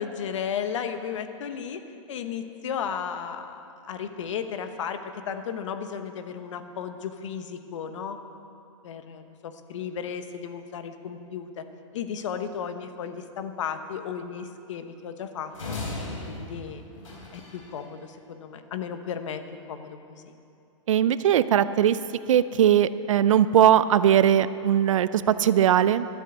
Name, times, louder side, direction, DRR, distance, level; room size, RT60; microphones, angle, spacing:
voice 1, 0.0-1.8 2.1-8.2 8.8-11.7 11.9-15.5 16.3-16.8 17.3-19.4 19.7-20.4, left 7 dB, 70° left, 8 dB, 1.1 m, -34 dB
sound 1, 15.5-17.8, left 2 dB, 85° left, 3.6 m, -36 dB
voice 2, 20.9-22.0 22.3-26.1, right 10 dB, 75° right, 14 dB, 0.5 m, -20 dB
13.0 x 7.6 x 8.1 m, 2.6 s
hypercardioid pair, 140°, 17 cm